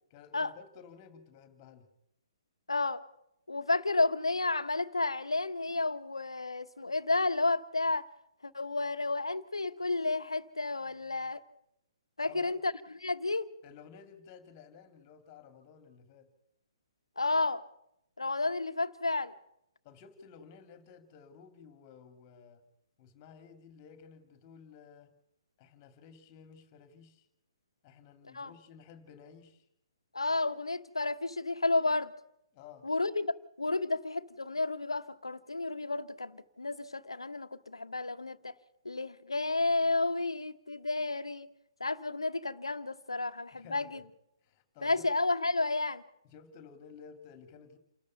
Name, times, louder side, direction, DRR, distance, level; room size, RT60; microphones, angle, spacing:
voice 1, 0.1-1.9 10.8-11.2 12.2-12.6 13.6-16.3 19.8-22.6 23.0-25.1 25.6-27.3 27.8-29.7 32.5-32.9 43.1-43.2 43.5-44.0 44.4-45.1 46.3-47.8, left 6 dB, 30° left, 2.8 m, -54 dB
voice 2, 2.7-3.0 3.5-8.1 8.4-11.4 12.2-12.7 13.0-13.5 17.2-17.6 18.2-19.3 28.3-28.5 30.1-32.1 32.8-38.5 38.8-41.5 41.8-44.0 44.8-46.0, left 3 dB, 75° left, 1.2 m, -31 dB
29.0 x 14.0 x 7.0 m
figure-of-eight pair, 125°, 3 cm